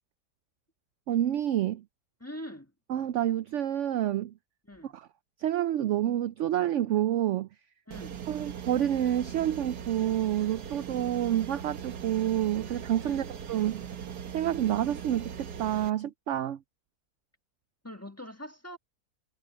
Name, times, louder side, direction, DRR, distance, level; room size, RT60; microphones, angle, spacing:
voice 1, 1.1-1.8 2.9-4.3 4.8-5.1 5.4-7.5 8.3-13.8 14.3-16.6, right 11 dB, 70° right, 0.7 m, -28 dB
voice 2, 2.2-2.7 4.7-4.9 7.9-8.2 13.0-13.3 17.8-18.8, equal, 10° left, 1.4 m, -43 dB
sound 1, 7.9-15.9, right 7 dB, 85° right, 1.7 m, -40 dB
omnidirectional pair, 1.7 m